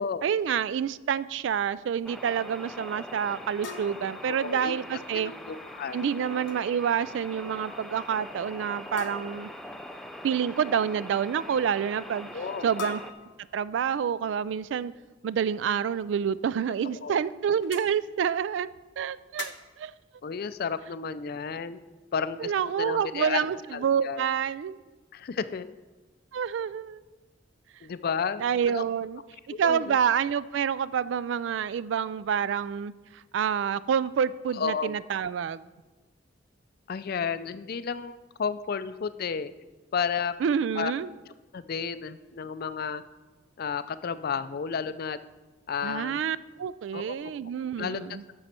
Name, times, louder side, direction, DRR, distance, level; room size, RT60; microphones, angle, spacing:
voice 1, 0.2-5.3 5.9-9.5 10.2-12.3 12.6-13.0 13.5-14.9 15.2-18.7 19.0-19.9 22.4-24.8 26.3-27.0 28.4-29.2 29.5-35.6 40.4-41.1 45.8-48.2, right 7 dB, 75° right, 18 dB, 0.3 m, -28 dB
sound 1, 2.0-13.1, equal, ahead, 0.5 m, -42 dB
sound 2, 3.6-5.0 6.2-6.6 6.9-7.2 7.5-7.6 9.0-9.6 12.8-14.0 16.0-16.1 16.6-16.7 17.6-17.9 19.4-19.8, left 4 dB, 85° left, 0.8 m, -41 dB
voice 2, 4.3-6.1 12.3-12.7 16.8-17.2 20.2-21.8 22.1-23.5 23.7-24.3 25.1-25.7 27.8-28.4 28.7-28.8 29.5-30.0 34.6-35.0 36.9-39.5 39.9-40.4 40.8-40.9 41.5-43.0 43.6-45.2 45.7-46.2 46.9-47.3 47.8-48.0, left 6 dB, 55° left, 13 dB, 0.4 m, -32 dB
11.0 x 6.9 x 4.3 m, 1.2 s
head